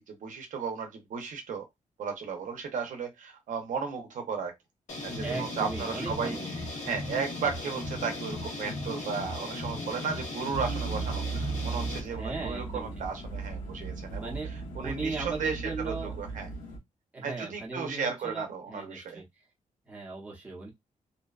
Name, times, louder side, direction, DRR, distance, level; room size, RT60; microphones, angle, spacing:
voice 1, 0.1-1.7 2.0-4.5 5.0-6.4 6.9-14.3 14.8-16.5 17.2-19.2, right 5 dB, 75° right, 0.6 m, -35 dB
sound 1, 4.9-12.0, left 2 dB, 60° left, 0.9 m, -36 dB
voice 2, 5.2-6.5 12.0-12.9 14.1-14.5 14.8-16.1 17.1-19.2 19.8-20.7, right 3 dB, 10° right, 0.8 m, -37 dB
sound 2, 10.5-16.8, right 4 dB, 85° left, 0.9 m, -36 dB
2.6 x 2.2 x 2.3 m
wide cardioid pair, 165°, 13 cm